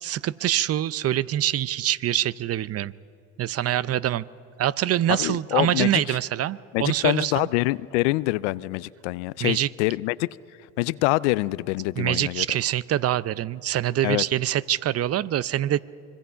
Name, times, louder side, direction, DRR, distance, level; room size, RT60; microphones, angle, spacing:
voice 1, 0.0-2.9 3.4-4.2 4.6-7.5 9.4-9.7 12.0-15.8, right 12 dB, 45° right, 19 dB, 0.6 m, -25 dB
voice 2, 5.1-6.2 6.7-10.3 10.8-12.5 14.0-14.2, left 20 dB, 90° left, 20 dB, 0.5 m, -25 dB
25.0 x 22.0 x 5.7 m, 2.6 s
supercardioid pair, 75°, 34 cm